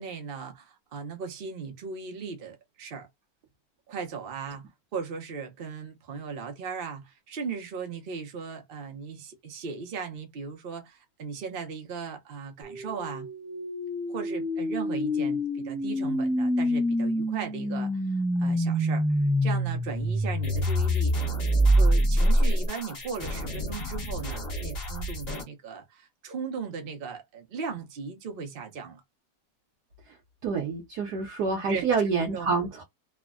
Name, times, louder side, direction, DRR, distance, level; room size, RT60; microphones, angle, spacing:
voice 1, 0.0-3.1 3.9-13.3 14.1-21.3 21.8-29.0 31.7-31.9 32.2-32.5, right 5 dB, 50° right, 0.7 m, -37 dB
sound 1, 12.6-22.7, equal, 5° right, 0.4 m, -25 dB
sound 2, 20.4-25.4, left 1 dB, 40° left, 1.2 m, -36 dB
voice 2, 30.4-32.8, right 4 dB, 70° right, 1.2 m, -27 dB
3.4 x 2.1 x 2.3 m
omnidirectional pair, 1.9 m